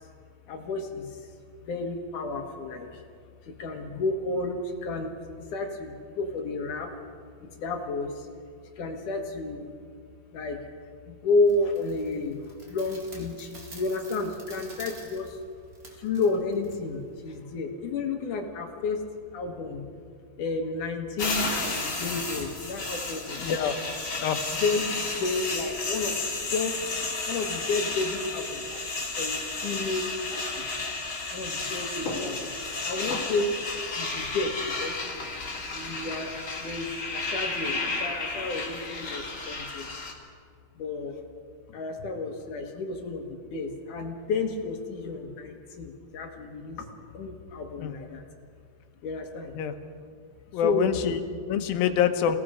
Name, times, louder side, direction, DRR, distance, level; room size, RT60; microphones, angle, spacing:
voice 1, 0.5-1.1 1.7-2.9 3.5-5.1 5.5-6.9 7.6-8.1 8.8-9.7 10.3-10.6 11.1-12.4 12.7-15.3 16.0-19.0 19.3-19.9 20.4-23.7 24.6-26.2 26.5-26.8 27.3-28.8 29.2-30.4 31.3-32.5 32.8-33.5 33.9-35.0 35.7-39.9 40.8-41.1 41.7-46.9 47.1-48.2 49.0-49.5 50.6-51.0, left 3 dB, 65° left, 3 dB, 2.9 m, -31 dB
sound 1, 11.5-17.4, right 2 dB, 30° right, 2.3 m, -50 dB
sound 2, 21.2-40.1, left 3 dB, 35° left, 3.4 m, -32 dB
voice 2, 23.4-23.8 24.2-24.4 47.8-47.9 49.6-49.8 50.5-52.4, left 8 dB, 80° left, 7 dB, 2.9 m, -26 dB
28.5 x 18.0 x 5.1 m, 2.2 s
omnidirectional pair, 4.1 m